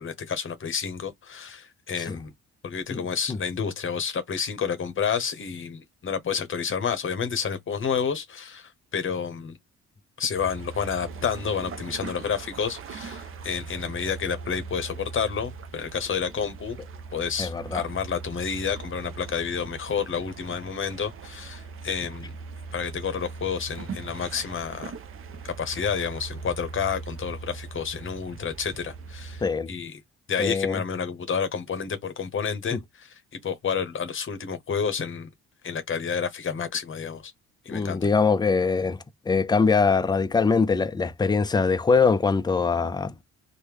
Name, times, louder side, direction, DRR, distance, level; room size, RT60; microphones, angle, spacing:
voice 1, 0.0-2.3 2.6-9.6 10.2-16.8 17.1-22.3 22.7-24.9 25.4-29.4 29.7-30.0 30.3-33.1 33.4-35.3 35.6-37.3 37.6-38.1, left 6 dB, 45° left, 0.8 m, -30 dB
sound 1, 10.3-29.5, right 4 dB, 45° right, 0.6 m, -40 dB
voice 2, 17.4-17.9 29.4-29.7 30.4-30.8 32.7-32.8 37.7-39.0 39.3-43.2, left 4 dB, 15° left, 0.3 m, -23 dB
3.0 x 2.1 x 3.4 m
cardioid pair, 90°, 30 cm